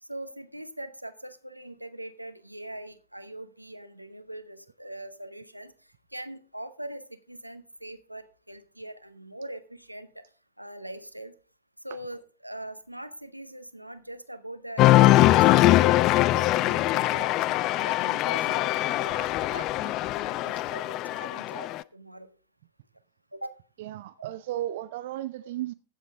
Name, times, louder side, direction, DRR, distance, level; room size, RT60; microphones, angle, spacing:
voice 1, 0.0-5.7 6.1-10.2 10.6-11.3 11.8-17.3 17.7-22.3 23.3-23.6, right 1 dB, 90° right, 1.0 m, -42 dB
Cheering, 14.8-21.8, left 16 dB, 40° left, 0.4 m, -22 dB
voice 2, 23.8-25.7, right 13 dB, 55° right, 0.5 m, -34 dB
15.5 x 7.2 x 3.6 m
figure-of-eight pair, 90°, 0 cm